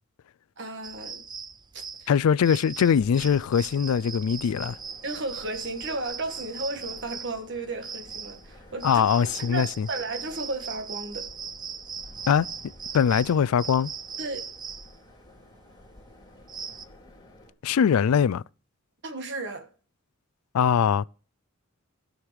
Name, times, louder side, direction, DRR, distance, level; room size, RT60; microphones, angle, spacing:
voice 1, 0.6-1.2 1.7-2.1 5.0-11.3 14.2-14.4 19.0-19.7, right 2 dB, 55° right, 1.5 m, -34 dB
sound 1, 0.8-16.8, right 6 dB, 20° right, 0.4 m, -40 dB
voice 2, 2.1-4.8 8.8-9.9 12.3-12.5 12.9-13.9 17.6-18.4 20.5-21.0, left 7 dB, 85° left, 0.4 m, -22 dB
sound 2, 2.9-17.5, left 1 dB, 20° left, 2.4 m, -51 dB
18.0 x 6.4 x 3.4 m
head